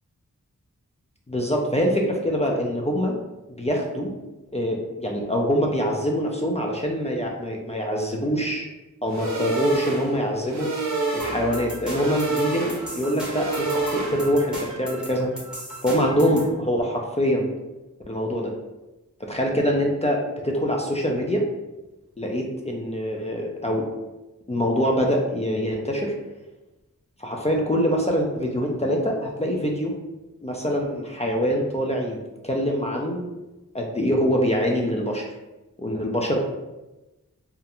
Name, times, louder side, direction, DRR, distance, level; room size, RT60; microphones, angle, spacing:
voice 1, 1.3-3.1 3.6-4.1 4.5-8.7 9.0-10.7 11.1-15.3 15.8-17.5 18.1-18.5 19.2-21.4 22.2-23.9 24.5-26.1 27.2-29.9 30.4-32.2 32.4-33.3 33.7-35.3 35.8-36.4, equal, 20° left, -1 dB, 0.3 m, -24 dB
sound 1, 9.1-14.5, right 3 dB, 60° right, 0.6 m, -28 dB
sound 2, 11.2-16.5, right 1 dB, 5° right, 0.7 m, -36 dB
2.4 x 2.1 x 2.9 m, 1.0 s
wide cardioid pair, 55°, 32 cm